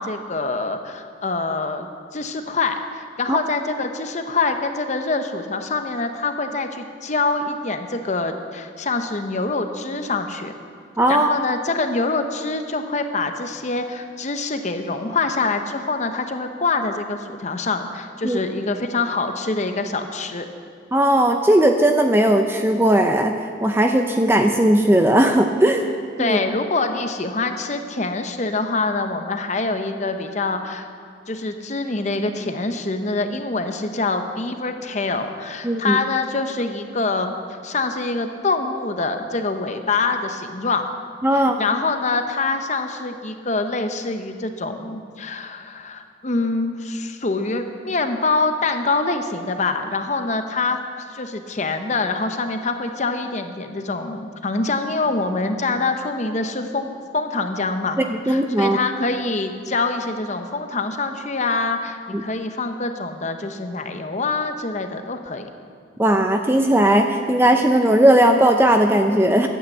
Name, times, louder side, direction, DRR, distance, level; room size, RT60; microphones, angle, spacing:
voice 1, 0.0-1.9 2.1-10.5 11.1-20.5 26.2-30.9 31.3-40.9 41.3-50.8 51.1-58.0 58.3-65.5, left 3 dB, 40° left, 7 dB, 0.8 m, -25 dB
voice 2, 11.0-11.3 18.2-18.4 20.9-23.3 23.6-25.9 26.2-26.4 35.6-36.0 41.2-41.7 58.3-58.8 62.1-62.2 66.0-69.5, right 1 dB, 10° right, 5 dB, 0.5 m, -17 dB
12.0 x 8.7 x 7.8 m, 2.3 s
head